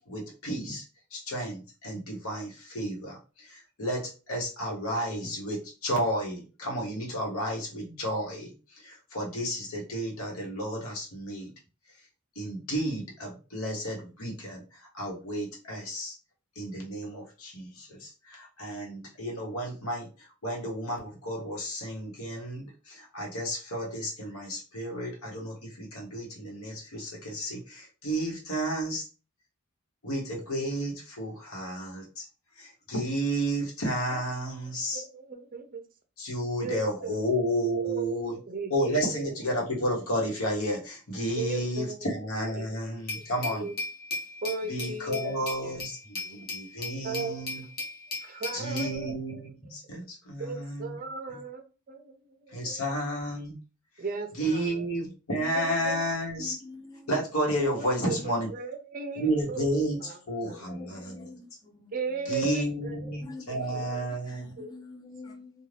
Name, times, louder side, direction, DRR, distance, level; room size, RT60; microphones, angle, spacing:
voice 1, 0.1-0.8 1.1-3.2 3.5-11.5 12.4-14.6 14.9-16.1 16.6-20.1 20.4-29.1 30.0-32.2 32.6-35.0 36.2-38.4 38.7-43.7 44.7-47.6 48.5-51.0 52.5-53.5 54.4-56.6 57.1-58.5 59.1-61.3 62.3-64.5, equal, 70° left, 1.1 m, -32 dB
voice 2, 34.9-35.8 36.6-37.3 37.7-39.3 39.8-39.9 41.3-42.1 42.6-42.8 43.1-43.2 43.5-43.7 44.4-45.8 46.2-46.4 47.0-47.4 48.2-49.1 50.4-51.6 51.9-52.9 54.0-54.8 55.5-56.0 57.8-58.2 58.5-59.7 60.0-61.0 61.9-63.2 63.5-64.0 64.6-64.7, right 4 dB, 40° right, 0.5 m, -37 dB
Glass, 43.1-49.0, left 3 dB, 45° left, 1.0 m, -37 dB
voice 3, 55.4-55.8 56.4-57.1 60.5-61.5 61.8-61.9 63.2-65.7, left 2 dB, 20° left, 0.7 m, -46 dB
2.5 x 2.3 x 3.3 m
head